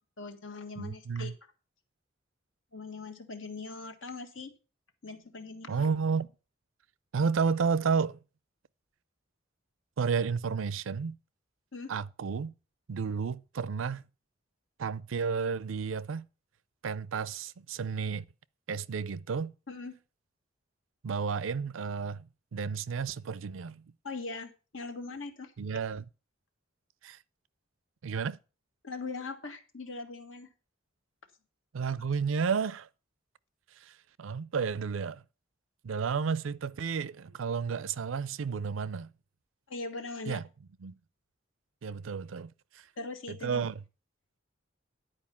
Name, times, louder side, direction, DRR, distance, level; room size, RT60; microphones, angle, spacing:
voice 1, 0.2-1.3 2.7-4.5 5.0-5.9 11.7-11.9 19.7-20.0 24.0-25.5 28.8-30.5 39.7-40.4 43.0-43.7, left 3 dB, 80° left, 1.6 m, -41 dB
voice 2, 0.8-1.3 5.7-6.3 7.1-8.2 10.0-11.2 11.9-12.5 12.9-14.0 14.8-16.2 16.8-18.2 18.7-19.5 21.0-23.8 25.6-26.1 27.0-27.2 28.0-28.4 31.7-32.9 33.7-35.2 35.8-39.1 40.3-40.4 40.8-41.0 41.8-42.9 43.3-43.8, right 5 dB, 85° right, 0.5 m, -32 dB
10.5 x 4.9 x 7.1 m
head